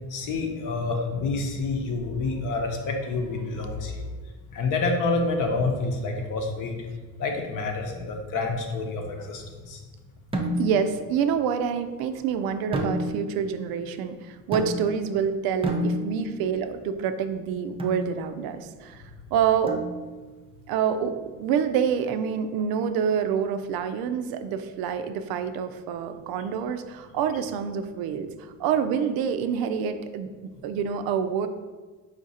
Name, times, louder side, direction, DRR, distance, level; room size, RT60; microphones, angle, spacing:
voice 1, 0.1-4.1 4.5-6.8 7.2-9.8, left 3 dB, 55° left, 3 dB, 0.9 m, -28 dB
sound 1, 10.3-11.0 12.7-13.5 14.5-15.1 15.6-16.4 17.8-18.1 19.7-20.3, equal, 15° right, 0.4 m, -29 dB
voice 2, 10.6-19.0 19.3-19.8 20.7-31.5, right 7 dB, 75° right, 9 dB, 0.5 m, -27 dB
5.1 x 2.5 x 4.1 m, 1.3 s
cardioid pair, 120°, 36 cm